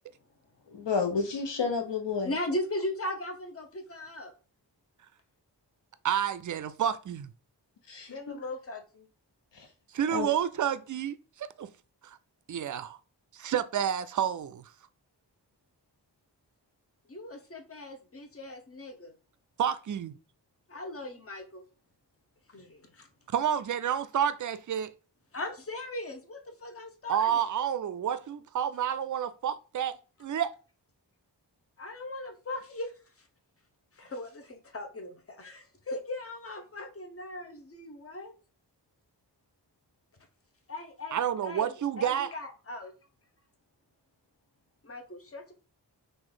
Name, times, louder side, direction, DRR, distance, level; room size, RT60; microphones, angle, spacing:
voice 1, 0.7-2.3 7.9-8.3 9.5-9.7 10.1-10.3, left 5 dB, 75° left, 1.0 m, -31 dB
voice 2, 2.2-4.3 8.1-9.1 17.1-19.1 20.7-21.6 22.5-23.1 25.3-27.4 31.8-32.9 34.0-38.3 40.7-42.9 44.8-45.5, left 1 dB, 30° left, 0.9 m, -38 dB
voice 3, 6.0-7.3 9.9-11.7 12.5-13.0 13.3-14.6 19.6-20.1 23.3-24.9 27.1-30.5 41.1-42.3, right 9 dB, 45° right, 0.4 m, -29 dB
3.1 x 2.6 x 3.8 m
cardioid pair, 40°, 43 cm